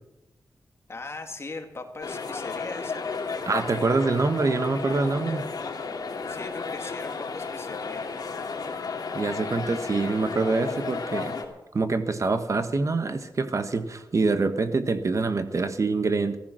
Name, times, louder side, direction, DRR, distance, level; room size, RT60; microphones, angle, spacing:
voice 1, 0.9-3.1 6.3-8.1, left 3 dB, 35° left, 4 dB, 2.2 m, -39 dB
sound 1, 2.0-11.4, left 4 dB, 60° left, 2.5 m, -33 dB
voice 2, 3.5-5.5 9.1-11.3 11.7-16.4, right 3 dB, 45° right, 10 dB, 1.3 m, -25 dB
15.0 x 13.5 x 6.2 m, 0.96 s
wide cardioid pair, 100°, 8 cm